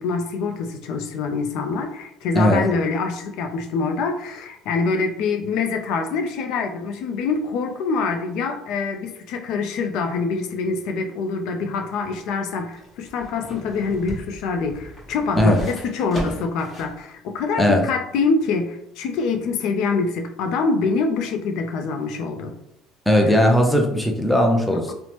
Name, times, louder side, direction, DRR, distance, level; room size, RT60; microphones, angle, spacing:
voice 1, 0.0-22.5 23.3-23.4 24.9-25.0, left 4 dB, 70° left, 5 dB, 0.3 m, -25 dB
sound 1, 11.9-17.0 17.4-17.5, equal, 20° left, 1.1 m, -36 dB
voice 2, 23.1-24.9, equal, ahead, 1 dB, 0.4 m, -18 dB
3.0 x 2.0 x 2.9 m, 0.78 s
cardioid pair, 130°, 0 cm